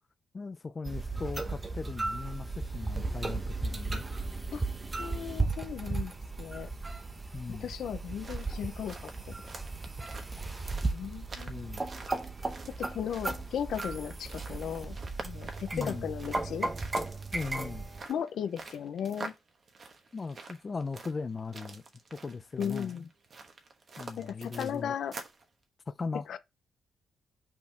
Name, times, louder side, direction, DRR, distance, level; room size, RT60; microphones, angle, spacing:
voice 1, 0.3-4.0 7.3-7.7 11.5-11.8 15.7-16.1 17.3-17.9 20.1-21.8 22.1-23.1 24.0-25.0 25.9-26.3, left 4 dB, 30° left, 0.4 m, -38 dB
sound 1, 0.9-18.1, right 3 dB, 20° right, 0.8 m, -36 dB
voice 2, 5.0-6.7 7.5-9.0 9.3-9.4 10.7-11.6 12.8-15.0 15.2-16.7 18.1-19.3 22.6-23.1 24.2-25.2 26.3-26.4, left 8 dB, 65° left, 0.7 m, -36 dB
sound 2, 8.1-25.5, right 3 dB, 40° right, 1.2 m, -47 dB
5.8 x 4.3 x 4.5 m
cardioid pair, 140°, 0 cm